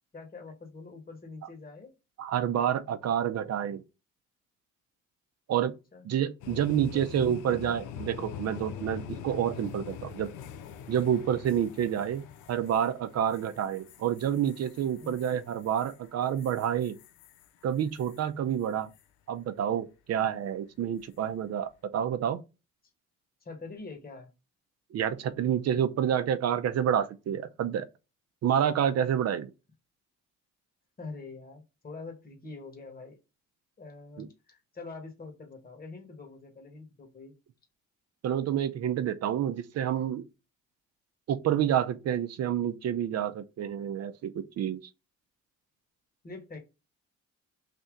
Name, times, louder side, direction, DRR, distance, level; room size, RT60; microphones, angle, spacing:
voice 1, 0.1-1.9 5.9-6.1 6.5-6.6 6.9-7.7 15.0-15.1 23.4-24.3 31.0-33.2 33.8-37.3 46.2-46.6, left 3 dB, 30° left, 1.2 m, -45 dB
voice 2, 2.2-3.8 5.5-5.7 6.0-10.3 10.9-17.0 17.6-18.9 19.3-22.4 24.9-27.9 28.4-29.5 34.2-34.3 38.2-40.2 41.3-44.8, right 9 dB, 55° right, 0.5 m, -28 dB
sound 1, 6.4-18.3 18.6-19.0 21.0-21.3, left 9 dB, 85° left, 0.5 m, -45 dB
3.3 x 2.7 x 3.6 m
cardioid pair, 90°, 30 cm